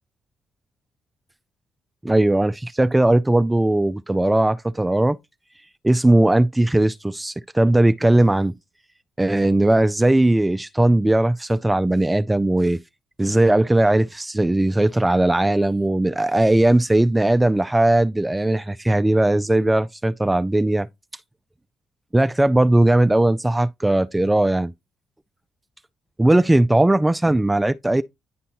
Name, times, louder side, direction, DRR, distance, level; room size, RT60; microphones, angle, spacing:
voice 1, 2.0-5.2 5.8-8.5 9.2-12.8 13.2-20.9 22.1-24.7 26.2-28.0, right 1 dB, 10° right, 0.3 m, -18 dB
10.0 x 4.1 x 2.9 m
cardioid pair, 90°, 0 cm